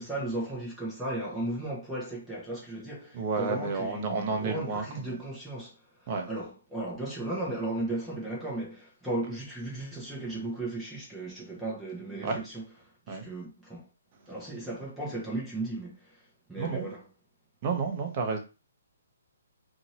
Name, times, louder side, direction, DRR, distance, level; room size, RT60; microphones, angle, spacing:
voice 1, 0.0-13.9 14.3-17.0, right 2 dB, 5° right, 1.0 m, -36 dB
voice 2, 3.1-5.2 6.1-6.3 12.2-12.4 13.1-13.3 16.6-16.9 17.6-18.4, right 4 dB, 35° right, 0.9 m, -31 dB
2.7 x 2.6 x 3.0 m
hypercardioid pair, 145°, 0 cm